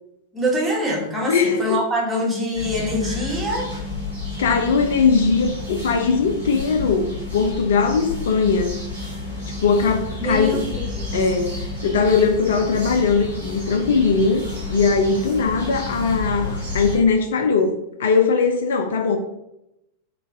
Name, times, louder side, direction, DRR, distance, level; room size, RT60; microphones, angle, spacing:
voice 1, 0.3-3.7 10.2-11.2, equal, 10° right, -3 dB, 1.1 m, -24 dB
voice 2, 1.3-1.8 4.4-8.8 9.6-10.6 11.1-14.4 14.7-19.2, left 4 dB, 60° left, 4 dB, 0.4 m, -20 dB
sound 1, 2.5-17.0, left 3 dB, 90° right, 1.2 m, -30 dB
3.8 x 2.3 x 2.6 m, 0.85 s
figure-of-eight pair, 90°, 0 cm